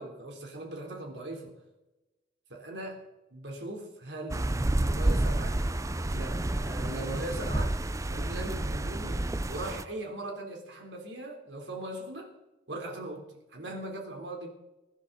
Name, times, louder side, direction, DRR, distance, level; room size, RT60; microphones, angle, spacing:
voice 1, 0.0-1.5 2.5-4.5 4.8-5.6 6.1-7.8 8.1-9.2 9.5-12.3 12.7-14.5, right 1 dB, 70° right, 1 dB, 3.9 m, -39 dB
sound 1, 4.3-9.8, right 1 dB, 15° right, 0.5 m, -29 dB
23.0 x 11.0 x 4.2 m, 1.0 s
head